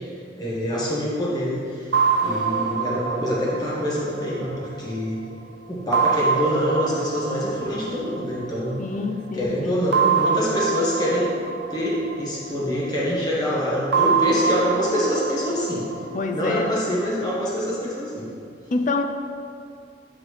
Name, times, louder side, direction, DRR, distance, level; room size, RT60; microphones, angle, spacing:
voice 1, 0.4-1.9 2.2-5.2 5.7-8.8 9.3-11.3 11.7-15.9 16.3-18.3, equal, 25° left, -6 dB, 1.3 m, -25 dB
sound 1, 1.9-5.3 5.9-8.8 9.9-13.0 13.9-17.0, right 5 dB, 65° right, 0.4 m, -25 dB
voice 2, 8.8-9.8 16.1-16.7 18.7-19.0, left 3 dB, 45° left, 6 dB, 0.4 m, -26 dB
8.6 x 3.8 x 3.2 m, 2.3 s
head